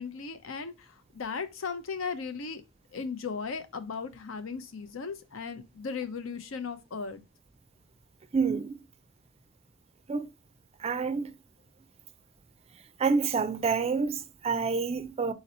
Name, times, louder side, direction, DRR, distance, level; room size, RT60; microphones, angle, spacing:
voice 1, 0.0-2.6 2.9-7.2, left 5 dB, 80° left, 0.6 m, -37 dB
voice 2, 8.3-8.8 10.1-10.3 10.8-11.3 13.0-15.3, right 5 dB, 30° right, 0.3 m, -28 dB
3.9 x 2.9 x 4.1 m
head